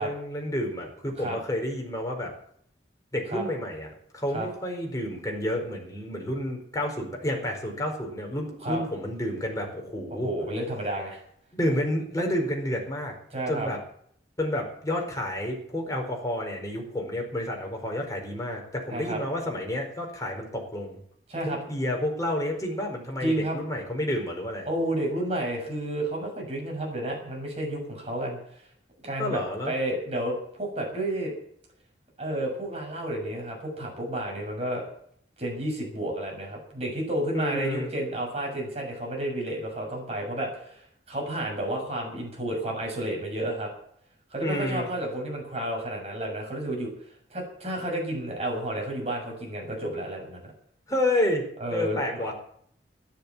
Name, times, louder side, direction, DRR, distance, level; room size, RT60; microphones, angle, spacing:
voice 1, 0.0-2.3 3.1-3.9 4.1-10.3 11.5-13.1 13.5-13.8 14.4-21.0 21.4-24.7 29.2-29.7 37.3-37.9 44.4-44.9 50.9-52.3, left 1 dB, 20° left, 1 dB, 4.6 m, -30 dB
voice 2, 10.1-11.2 13.3-13.7 18.9-19.2 21.3-21.6 23.2-23.6 24.7-28.6 29.0-31.3 32.2-34.8 35.4-40.8 41.1-43.7 44.3-46.9 47.3-50.5 51.6-52.3, right 1 dB, 35° right, 0 dB, 6.9 m, -31 dB
13.5 x 11.5 x 7.4 m, 0.65 s
head